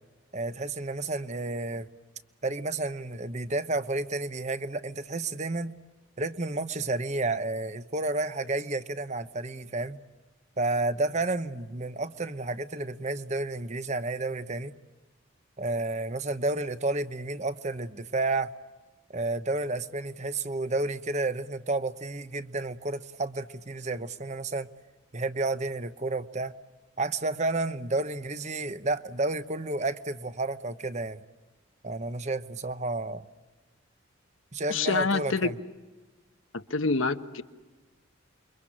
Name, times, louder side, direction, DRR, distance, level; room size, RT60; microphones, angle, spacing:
voice 1, 0.3-1.9 2.4-5.7 6.2-10.0 10.6-14.7 15.6-18.5 19.1-24.7 25.1-26.5 27.0-31.2 31.8-33.3 34.5-35.6, right 2 dB, 35° right, 12 dB, 0.9 m, -31 dB
voice 2, 34.7-35.5 36.5-37.4, left 4 dB, 75° left, 10 dB, 1.2 m, -27 dB
28.5 x 23.5 x 8.7 m, 1.2 s
head